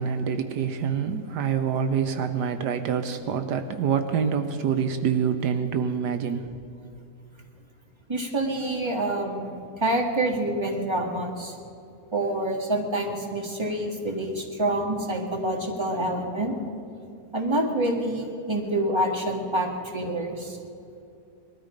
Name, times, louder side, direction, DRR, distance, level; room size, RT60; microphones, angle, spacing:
voice 1, 0.0-6.6, right 7 dB, 80° right, 8 dB, 1.4 m, -26 dB
voice 2, 8.1-11.5 12.1-16.5 17.3-20.6, right 1 dB, 15° right, 1 dB, 1.9 m, -27 dB
20.5 x 13.0 x 5.1 m, 2.6 s
omnidirectional pair, 1.8 m